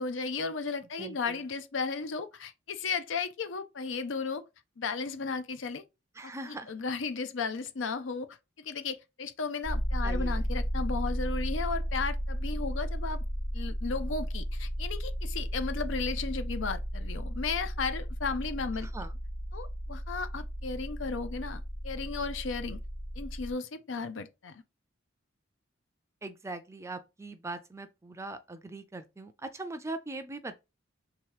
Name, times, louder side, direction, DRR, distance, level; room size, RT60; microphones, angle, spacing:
voice 1, 0.0-4.4 4.8-5.8 6.2-8.3 8.6-13.2 13.5-18.9 19.5-22.8 23.2-24.6, left 4 dB, 70° left, 0.6 m, -35 dB
voice 2, 1.0-1.4 6.2-6.7 10.0-10.5 18.8-19.1 26.2-30.6, right 2 dB, 15° right, 0.4 m, -41 dB
sound 1, 9.6-23.5, equal, 25° left, 0.9 m, -34 dB
3.5 x 2.9 x 4.7 m
head